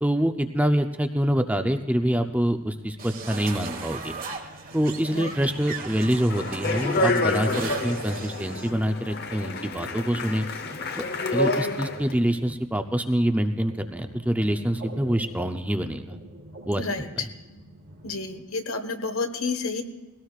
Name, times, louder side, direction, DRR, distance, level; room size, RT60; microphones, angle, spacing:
voice 1, 0.0-4.1 4.7-10.5 11.0-11.1 11.3-16.2 16.7-16.8 17.2-17.3, equal, 5° right, 6 dB, 0.5 m, -25 dB
sound 1, 1.3-18.4, right 1 dB, 60° right, 2.5 m, -46 dB
sound 2, 3.0-8.7, right 4 dB, 40° right, 1.5 m, -37 dB
Speech, 6.3-12.1, left 2 dB, 45° left, 0.9 m, -28 dB
voice 2, 16.8-17.3 18.0-19.8, left 4 dB, 80° left, 7 dB, 1.4 m, -30 dB
21.0 x 17.5 x 2.4 m, 1.1 s
head